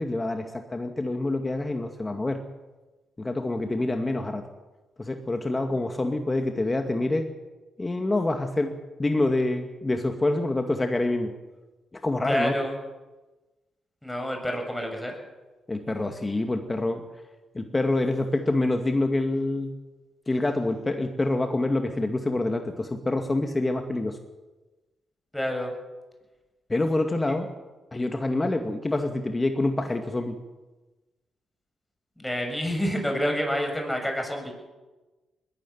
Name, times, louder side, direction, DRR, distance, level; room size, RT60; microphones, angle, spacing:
voice 1, 0.0-2.4 3.2-4.5 5.0-7.3 7.8-11.3 12.0-12.6 15.7-17.0 17.5-19.7 20.3-24.2 26.7-27.5 27.9-30.4, left 2 dB, 25° left, 5 dB, 2.3 m, -26 dB
voice 2, 12.3-12.7 14.0-15.1 25.3-25.7 32.2-34.5, equal, 5° left, 3 dB, 7.0 m, -28 dB
20.5 x 13.0 x 9.5 m, 1.1 s
supercardioid pair, 60°, 0 cm